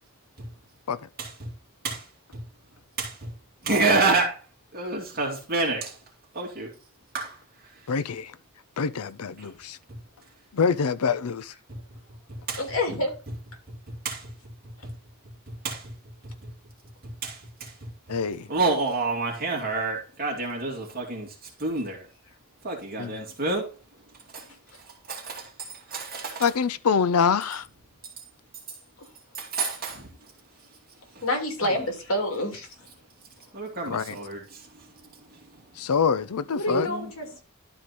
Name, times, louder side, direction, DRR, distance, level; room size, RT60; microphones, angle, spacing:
voice 1, 1.2-1.5 1.8-2.0 3.0-3.3 3.6-4.4 4.7-6.0 6.3-6.7 7.1-7.4 8.9-9.0 9.4-9.5 11.7-11.8 12.5-12.6 13.9-14.3 14.8-14.9 15.5-15.9 16.2-16.3 17.0-17.9 18.5-22.0 22.6-23.7 24.3-24.5 25.1-26.5 29.3-30.1 31.1-31.2 31.6-31.8 33.5-34.7 36.7-37.1, right 3 dB, 45° right, 2.5 m, -29 dB
voice 2, 7.9-8.3 8.8-9.8 10.5-11.5 18.1-18.5 23.0-23.1 26.4-27.7 33.9-34.1 35.8-36.9, left 6 dB, 85° left, 0.6 m, -25 dB
voice 3, 12.6-13.1 29.0-29.1 31.2-32.9 36.5-37.4, left 1 dB, 65° left, 2.8 m, -28 dB
12.0 x 4.8 x 4.2 m
head